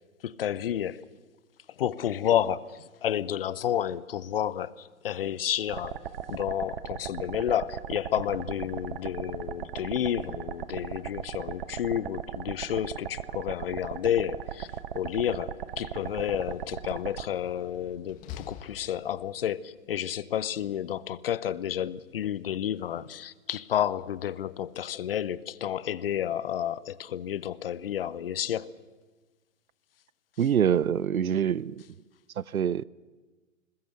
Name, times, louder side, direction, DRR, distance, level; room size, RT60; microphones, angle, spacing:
voice 1, 0.2-1.1 1.8-6.0 6.3-14.7 14.9-28.8, left 10 dB, 45° left, 0.8 m, -30 dB
sound 1, 5.7-17.3, right 10 dB, 40° right, 0.9 m, -37 dB
Slam, 14.8-19.5, left 8 dB, 20° left, 1.3 m, -49 dB
voice 2, 30.4-31.8 32.4-32.8, right 8 dB, 75° right, 0.7 m, -25 dB
21.5 x 20.0 x 7.9 m
figure-of-eight pair, 130°, 42 cm